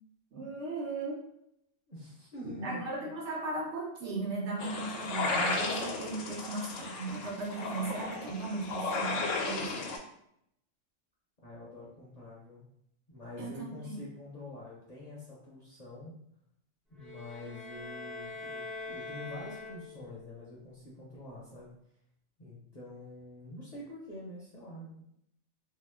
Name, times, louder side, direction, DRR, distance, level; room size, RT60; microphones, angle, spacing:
voice 1, 0.3-1.2 2.4-9.8 13.4-14.0, right 3 dB, 65° right, -2 dB, 1.0 m, -37 dB
voice 2, 1.9-2.9 11.4-12.6 13.1-16.1 16.9-21.7 22.4-25.0, left 1 dB, 40° left, -6 dB, 0.7 m, -46 dB
sound 1, 4.6-10.0, left 3 dB, 80° left, 0.9 m, -34 dB
sound 2, 17.0-20.2, left 3 dB, ahead, 0.4 m, -43 dB
2.8 x 2.0 x 3.3 m, 0.74 s
omnidirectional pair, 1.3 m